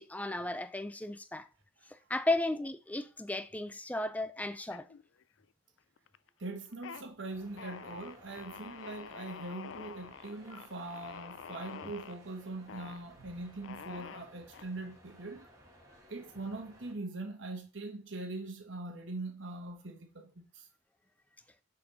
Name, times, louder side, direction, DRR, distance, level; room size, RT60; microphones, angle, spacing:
voice 1, 0.0-1.5 2.1-4.9, left 2 dB, 5° left, 0.4 m, -34 dB
sound 1, 4.7-5.4 5.8-6.3 6.7-7.0 7.6-12.2 12.7-13.0 13.6-14.6, left 7 dB, 70° left, 0.4 m, -47 dB
voice 2, 6.4-15.5 16.1-20.7, right 2 dB, 65° right, 1.2 m, -42 dB
sound 2, 7.3-16.9, equal, 15° right, 1.9 m, -59 dB
6.6 x 4.4 x 5.6 m
head